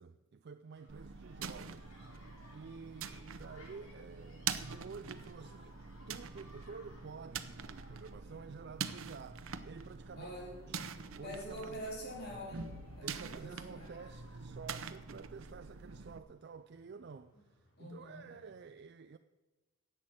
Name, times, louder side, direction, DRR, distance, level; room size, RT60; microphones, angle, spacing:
voice 1, 0.0-1.9 2.5-5.8 6.1-10.3 10.7-10.9 11.1-11.8 13.0-19.2, right 5 dB, 50° right, 0.4 m, -50 dB
sound 1, 0.7-18.7, left 1 dB, 85° left, 4.7 m, -63 dB
sound 2, 0.9-16.2, right 6 dB, 70° right, 0.7 m, -45 dB
voice 2, 10.2-10.6 11.2-13.9 17.8-18.3, equal, 45° left, 3.4 m, -45 dB
11.0 x 8.0 x 8.8 m
head